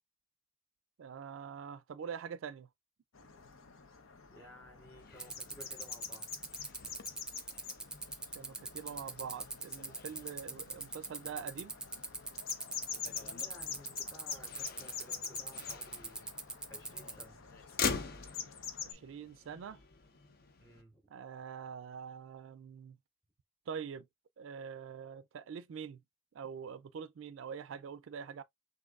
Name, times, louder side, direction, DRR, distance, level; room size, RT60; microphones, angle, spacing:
voice 1, 1.0-2.7 8.3-11.7 18.8-19.8 21.1-23.0 23.7-24.1 24.4-26.0 26.3-28.4, right 7 dB, 75° right, 0.3 m, -44 dB
sound 1, 3.1-18.9, left 7 dB, 90° left, 0.8 m, -47 dB
voice 2, 4.2-6.3 13.0-16.3 16.7-17.5 20.6-21.1, equal, 15° left, 3.2 m, -56 dB
Motor vehicle (road), 5.0-20.8, left 5 dB, 50° left, 0.6 m, -45 dB
sound 2, 5.2-17.2, right 3 dB, 5° right, 0.4 m, -40 dB
6.2 x 2.7 x 2.3 m
head